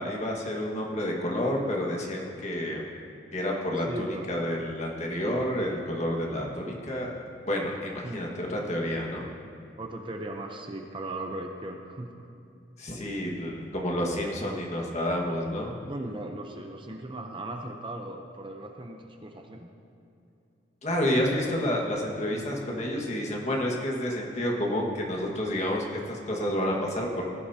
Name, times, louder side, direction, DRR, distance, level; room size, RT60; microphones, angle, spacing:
voice 1, 0.0-2.9 3.3-7.1 7.5-9.2 12.8-15.7 20.8-27.3, left 1 dB, 40° left, -1 dB, 1.7 m, -29 dB
voice 2, 3.8-4.2 8.0-8.4 9.8-12.3 15.8-19.7, right 1 dB, 30° right, 3 dB, 0.7 m, -38 dB
18.5 x 12.0 x 2.8 m, 2.6 s
head